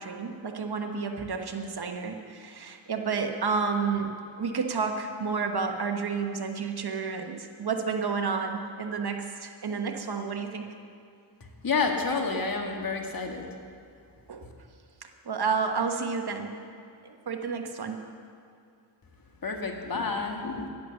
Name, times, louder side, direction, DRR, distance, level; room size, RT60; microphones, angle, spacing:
voice 1, 0.0-4.1 4.4-10.7 14.3-14.5 15.2-16.6 17.0-18.0, right 5 dB, 60° right, 4 dB, 1.3 m, -30 dB
voice 2, 11.6-13.5 14.4-14.5 19.4-20.7, left 4 dB, 50° left, 3 dB, 1.8 m, -29 dB
11.0 x 10.5 x 7.0 m, 2.4 s
cardioid pair, 65°, 45 cm